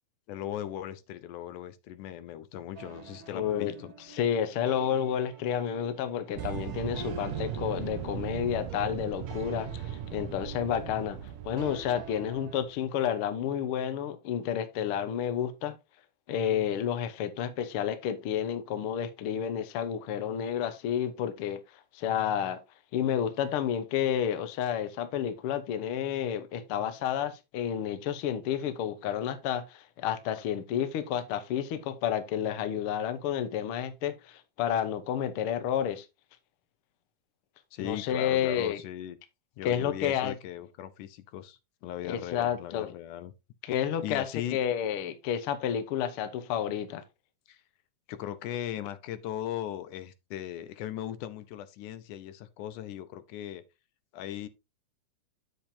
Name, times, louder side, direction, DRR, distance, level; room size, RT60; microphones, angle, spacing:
voice 1, 0.3-3.9 37.7-39.2 39.6-43.3 44.0-44.6 47.5-47.6 48.1-53.6 54.1-54.5, left 11 dB, 85° left, 2.3 m, -38 dB
sound 1, 2.7-12.6, right 4 dB, 55° right, 2.4 m, -46 dB
voice 2, 3.3-3.7 4.1-11.2 11.4-15.8 16.3-21.6 21.9-22.6 22.9-36.1 37.8-38.8 39.6-40.3 42.1-42.9 43.6-44.3 44.5-47.0, left 9 dB, 65° left, 1.4 m, -30 dB
sound 2, 6.4-12.8, right 11 dB, 80° right, 1.7 m, -38 dB
8.7 x 7.6 x 2.7 m
omnidirectional pair, 3.5 m